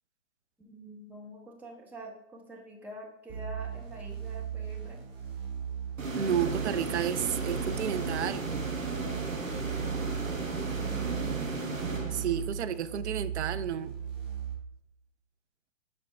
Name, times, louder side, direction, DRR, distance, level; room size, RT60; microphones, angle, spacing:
voice 1, 0.6-5.0 10.7-11.5, equal, 5° right, -1 dB, 0.7 m, -46 dB
sound 1, 3.3-14.5, right 8 dB, 25° right, 1.2 m, -37 dB
sound 2, 6.0-12.7, right 3 dB, 85° right, 1.1 m, -35 dB
voice 2, 6.2-8.4 12.1-13.9, right 9 dB, 60° right, 12 dB, 0.5 m, -31 dB
7.0 x 5.1 x 3.3 m, 0.83 s
figure-of-eight pair, 120°, 39 cm